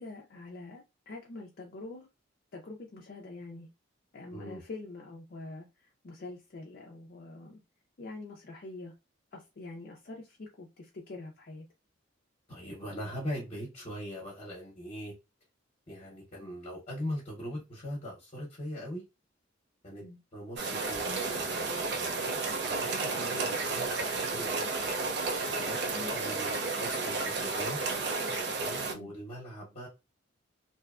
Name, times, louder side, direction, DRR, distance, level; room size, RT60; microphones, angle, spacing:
voice 1, 0.0-2.1 2.5-3.7 4.1-7.6 8.0-8.9 9.3-11.7 16.4-16.6 20.0-20.2 25.8-26.3 28.8-29.1, left 2 dB, 50° left, 0.4 m, -45 dB
voice 2, 12.5-15.1 15.9-19.0 19.8-20.0 20.3-22.2 22.7-25.0 25.4-27.8 28.6-29.9, equal, 35° left, 0.8 m, -41 dB
sound 1, 20.6-28.9, right 3 dB, 60° right, 0.6 m, -32 dB
2.7 x 2.2 x 2.3 m
head